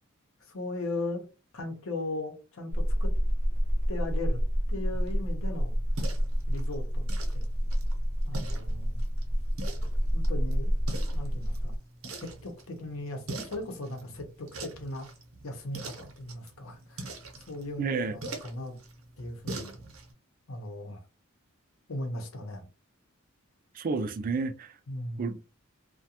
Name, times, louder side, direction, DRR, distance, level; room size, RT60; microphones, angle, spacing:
voice 1, 0.5-1.2 1.5-3.1 3.9-4.4 4.7-5.8 6.5-7.0 7.3-7.4 8.2-9.0 10.1-10.7 11.1-11.8 12.2-15.1 15.4-17.1 17.5-18.7 19.2-19.8 20.5-21.0 21.9-22.7 24.9-25.4, left 2 dB, 80° left, 0.7 m, -37 dB
sound 1, 2.7-11.8, equal, 35° left, 0.5 m, -28 dB
sound 2, 4.9-20.1, right 2 dB, 80° right, 0.7 m, -44 dB
voice 2, 17.8-18.2 23.8-24.7 25.2-25.4, right 4 dB, 40° right, 0.3 m, -30 dB
2.4 x 2.2 x 2.8 m
head